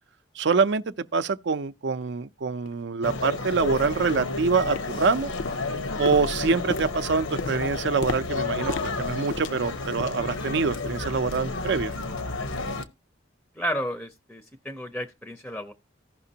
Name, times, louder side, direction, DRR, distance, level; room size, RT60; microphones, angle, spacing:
voice 1, 0.4-5.3 6.0-11.9, right 4 dB, 60° right, 0.5 m, -25 dB
sound 1, 2.0-2.1 2.7-2.8 3.3-3.5 4.0-4.3 4.7-5.1 5.4-10.3 10.6-10.9 11.3-11.5 12.0-12.1, left 4 dB, 65° left, 0.5 m, -37 dB
sound 2, 3.0-12.9, left 3 dB, 90° left, 1.0 m, -31 dB
voice 2, 13.6-15.7, equal, 5° left, 0.5 m, -32 dB
15.5 x 5.8 x 2.8 m
head